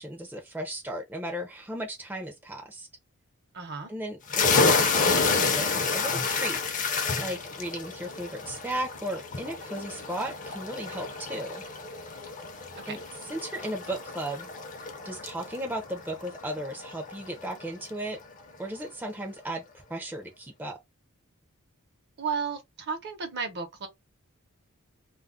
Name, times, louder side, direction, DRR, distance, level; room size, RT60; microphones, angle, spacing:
voice 1, 0.0-2.9 3.9-11.6 12.9-13.0 13.3-14.5 14.8-18.2 18.6-19.6 19.9-20.8, right 1 dB, 10° right, 0.5 m, -36 dB
voice 2, 3.5-3.9 12.8-13.0 22.2-23.9, right 5 dB, 50° right, 0.7 m, -33 dB
sound 1, 4.3-17.6, left 4 dB, 35° left, 0.6 m, -29 dB
2.3 x 2.0 x 3.6 m
head